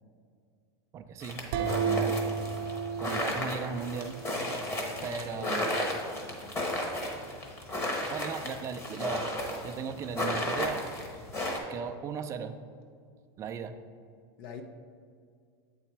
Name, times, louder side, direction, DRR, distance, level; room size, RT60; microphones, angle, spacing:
voice 1, 0.9-2.2 3.0-4.2 5.0-5.7 8.1-9.3 9.6-10.9 11.7-12.5 13.4-13.7, right 6 dB, 25° right, 8 dB, 0.4 m, -37 dB
sound 1, 1.2-11.6, left 1 dB, 20° left, 1.0 m, -34 dB
sound 2, 1.5-4.3, right 5 dB, 65° right, 0.6 m, -32 dB
voice 2, 4.4-5.8 6.1-6.7 14.4-14.6, left 5 dB, 65° left, 6 dB, 0.6 m, -45 dB
7.9 x 4.0 x 4.5 m, 2.2 s
supercardioid pair, 145°, 13 cm